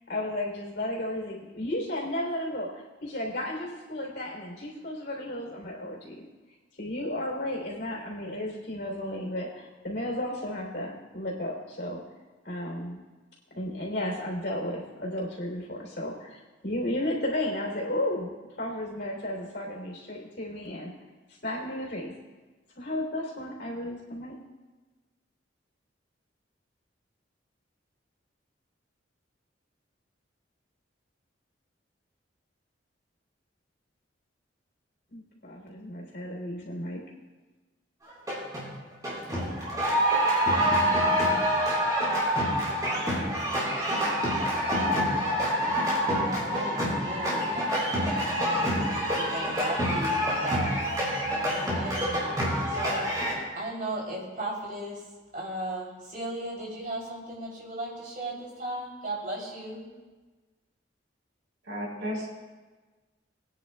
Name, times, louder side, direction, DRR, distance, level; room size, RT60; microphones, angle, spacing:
voice 1, 0.1-6.2 6.8-12.0 12.4-13.0 13.5-20.9 21.4-22.1 22.8-24.4 35.1-37.0, left 1 dB, 60° left, -1 dB, 3.3 m, -33 dB
sound 1, 38.1-38.7 39.0-53.3, equal, 20° right, 4.2 m, -26 dB
voice 2, 46.2-47.5 48.2-50.8 51.5-52.2 52.7-53.1 53.5-55.1 55.3-59.8, right 1 dB, 45° right, -3 dB, 3.0 m, -36 dB
voice 3, 61.7-62.3, equal, 85° right, -3 dB, 4.3 m, -33 dB
22.0 x 9.8 x 2.3 m, 1.3 s
head